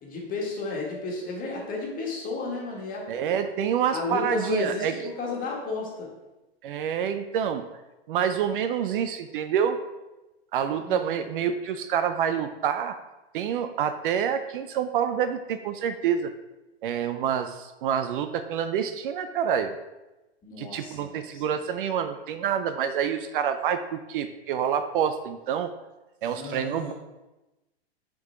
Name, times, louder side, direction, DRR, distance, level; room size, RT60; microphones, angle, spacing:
voice 1, 0.0-3.4 3.9-6.1 10.8-11.1 20.4-21.4 26.3-26.9, left 3 dB, 25° left, -2 dB, 1.7 m, -33 dB
voice 2, 3.1-5.1 6.6-7.7 8.1-9.8 10.5-13.0 13.3-16.3 16.8-19.7 20.6-25.7 26.2-26.9, right 8 dB, 55° right, 9 dB, 0.5 m, -27 dB
6.1 x 3.8 x 4.5 m, 1.0 s
hypercardioid pair, 120°, 32 cm